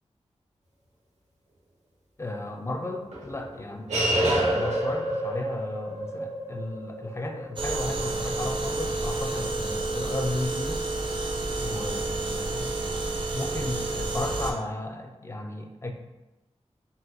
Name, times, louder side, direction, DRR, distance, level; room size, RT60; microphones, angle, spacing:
voice 1, 2.2-10.9 11.6-12.7 13.3-15.9, left 2 dB, 25° left, 4 dB, 0.3 m, -34 dB
sound 1, 3.1-9.9, right 1 dB, 80° right, 0.8 m, -30 dB
sound 2, 7.6-14.5, right 2 dB, 45° right, 0.5 m, -30 dB
4.0 x 2.2 x 2.5 m, 1.0 s
wide cardioid pair, 80°, 12 cm